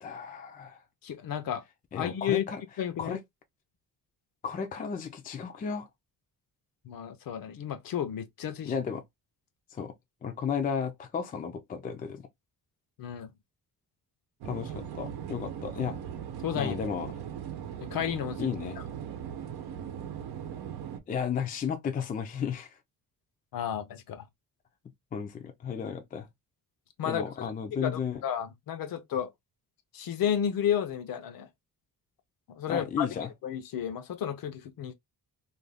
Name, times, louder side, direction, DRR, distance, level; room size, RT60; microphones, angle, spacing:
voice 1, 0.0-0.8 1.9-2.6 3.0-3.2 4.4-5.9 8.7-9.0 9.7-9.9 10.2-12.2 14.4-16.0 16.5-17.1 18.4-18.8 21.1-22.8 25.1-26.3 27.0-28.2 32.7-33.3, left 7 dB, 25° left, 0.4 m, -33 dB
voice 2, 1.0-1.6 1.9-2.4 2.8-3.2 6.8-8.7 13.0-13.3 16.4-16.8 17.8-18.5 23.5-24.2 27.0-27.5 27.8-29.3 29.9-31.5 32.5-33.1 33.4-34.9, left 9 dB, 65° left, 0.6 m, -32 dB
sound 1, 14.4-21.0, right 9 dB, 90° right, 0.8 m, -39 dB
2.5 x 2.2 x 3.3 m
wide cardioid pair, 165°, 37 cm